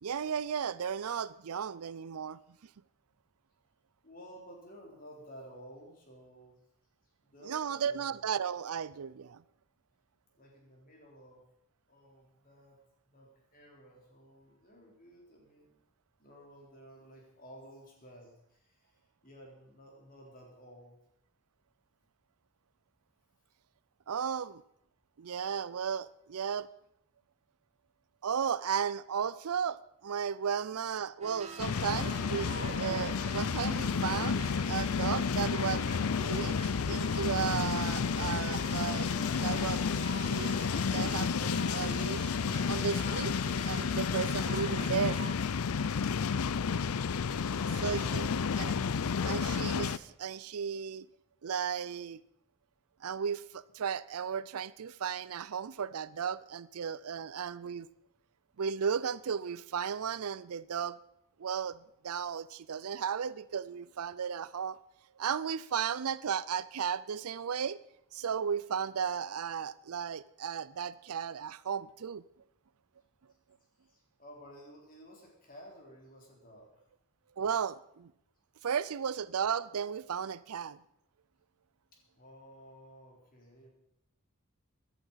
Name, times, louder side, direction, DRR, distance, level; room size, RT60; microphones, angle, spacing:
voice 1, 0.0-2.4 7.4-9.4 24.1-24.6 25.2-26.7 28.2-35.8 36.2-39.1 39.4-39.8 40.2-40.7 40.9-42.3 42.7-43.4 43.6-45.2 47.8-48.3 48.6-48.7 49.2-51.1 51.4-52.2 53.0-57.9 58.6-61.0 61.4-64.8 65.2-67.8 68.1-72.2 77.4-78.1 78.6-80.8, right 7 dB, 80° right, 0.5 m, -35 dB
voice 2, 4.0-6.6 7.0-8.2 10.3-11.5 11.9-12.8 13.0-15.8 16.2-21.0 47.5-48.5 73.8-76.9 81.9-83.7, equal, 40° left, 3.9 m, -54 dB
sound 1, 31.2-45.3, right 2 dB, 30° right, 2.0 m, -46 dB
sound 2, 31.6-50.0, left 6 dB, 75° left, 0.5 m, -31 dB
16.0 x 11.0 x 5.7 m
head